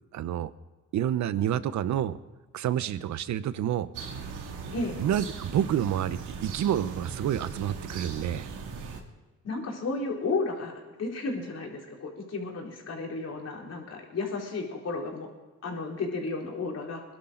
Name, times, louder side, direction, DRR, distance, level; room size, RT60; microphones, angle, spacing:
voice 1, 0.1-0.5 0.9-2.2 2.5-3.9 5.0-8.5, right 10 dB, 70° right, 14 dB, 0.9 m, -28 dB
sound 1, 3.9-9.0, right 5 dB, 85° right, 2.4 m, -39 dB
voice 2, 9.4-10.7 11.0-15.3 15.6-17.0, left 3 dB, 55° left, -1 dB, 4.3 m, -33 dB
22.5 x 11.5 x 3.9 m, 1.3 s
cardioid pair, 90°, 30 cm